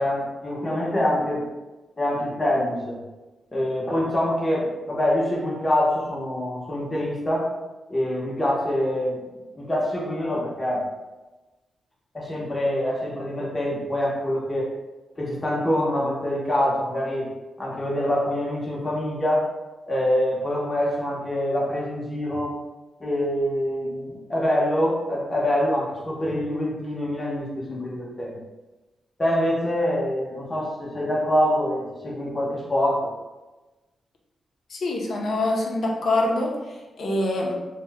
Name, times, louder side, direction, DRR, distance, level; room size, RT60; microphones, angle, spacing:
voice 1, 0.0-1.4 2.0-3.0 3.5-7.5 7.9-9.2 9.5-10.9 12.1-14.7 15.2-17.3 17.6-19.5 19.8-22.5 23.0-28.4 29.2-33.1, left 1 dB, 20° left, -4 dB, 0.8 m, -25 dB
voice 2, 34.7-37.5, left 2 dB, 60° left, -1 dB, 0.6 m, -25 dB
2.8 x 2.1 x 3.4 m, 1.1 s
cardioid pair, 110°, 0 cm